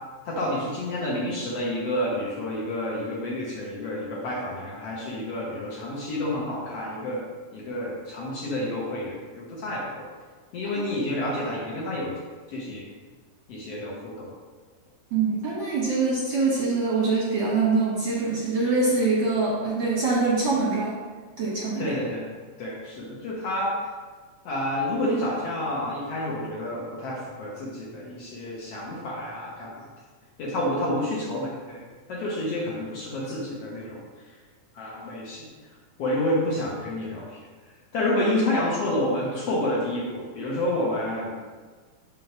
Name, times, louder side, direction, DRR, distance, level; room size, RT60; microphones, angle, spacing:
voice 1, 0.2-7.2 7.5-10.1 10.5-12.2 12.5-12.9 13.5-14.3 21.8-22.3 22.6-23.7 24.4-29.9 30.4-31.8 32.1-34.0 34.7-35.5 36.0-37.4 37.9-41.3, left 1 dB, 70° left, -4 dB, 1.4 m, -29 dB
voice 2, 15.1-21.0 21.4-21.9, right 3 dB, 60° right, -7 dB, 1.2 m, -24 dB
6.4 x 3.8 x 5.8 m, 1.5 s
omnidirectional pair, 4.3 m